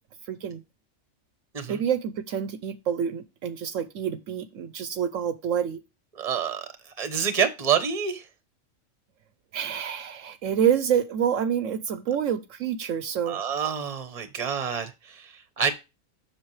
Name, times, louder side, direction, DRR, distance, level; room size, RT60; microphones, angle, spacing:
voice 1, 0.3-0.6 1.7-5.8 9.5-13.4, right 8 dB, 70° right, 1.0 m, -27 dB
voice 2, 6.2-6.7 7.0-8.2 13.3-15.7, right 7 dB, 30° right, 1.0 m, -27 dB
7.4 x 6.3 x 3.1 m
omnidirectional pair, 1.4 m